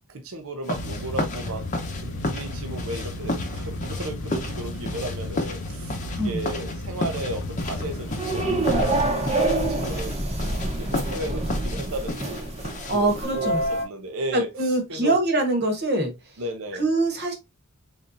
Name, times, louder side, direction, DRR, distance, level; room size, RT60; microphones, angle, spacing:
voice 1, 0.1-1.7 2.0-10.2 10.7-12.5 12.9-15.2 16.4-16.8, right 1 dB, 65° right, 0.7 m, -34 dB
sound 1, 0.6-13.2, left 2 dB, 35° left, 0.8 m, -34 dB
sound 2, 0.7-9.0, left 1 dB, 55° left, 0.5 m, -34 dB
sound 3, 7.6-13.9, right 2 dB, 30° right, 0.9 m, -26 dB
voice 2, 12.9-13.6 14.3-16.1 16.7-17.3, right 2 dB, 50° right, 1.2 m, -23 dB
4.1 x 3.4 x 2.6 m
head